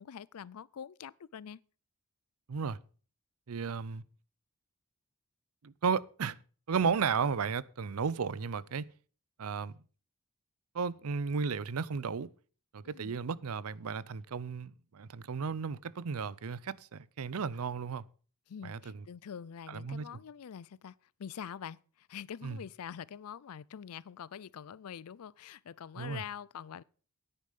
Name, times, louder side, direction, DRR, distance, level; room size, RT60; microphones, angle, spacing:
voice 1, 0.0-1.6 12.8-13.1 18.5-20.9 21.2-26.8, left 8 dB, 80° left, 0.4 m, -45 dB
voice 2, 3.5-4.0 5.6-6.4 6.7-8.9 9.4-9.8 10.7-12.3 12.7-18.0 18.6-19.0 19.7-20.1 22.4-22.6 26.0-26.2, right 5 dB, 75° right, 0.5 m, -34 dB
10.0 x 9.8 x 5.4 m
head